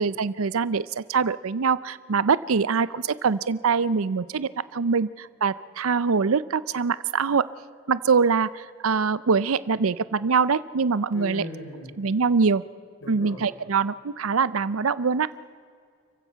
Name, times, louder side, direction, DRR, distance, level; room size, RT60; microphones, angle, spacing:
voice 1, 0.0-7.5 7.9-11.4 12.0-12.6 13.1-15.3, right 5 dB, 80° right, 17 dB, 0.6 m, -24 dB
voice 2, 11.1-12.0 13.0-13.5, left 2 dB, 70° left, 0 dB, 5.0 m, -38 dB
29.0 x 15.5 x 5.8 m, 2.2 s
head